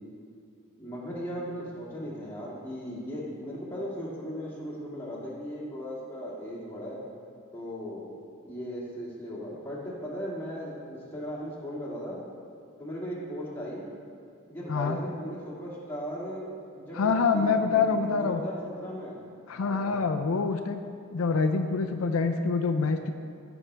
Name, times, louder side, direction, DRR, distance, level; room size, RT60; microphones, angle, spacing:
voice 1, 0.8-7.0 7.5-12.2 12.8-13.9 14.5-19.2 19.5-20.0, equal, 10° left, -7 dB, 2.0 m, -37 dB
voice 2, 16.9-18.4 19.5-20.8 21.1-23.1, left 4 dB, 80° left, 6 dB, 0.5 m, -26 dB
15.0 x 6.0 x 3.3 m, 2.3 s
head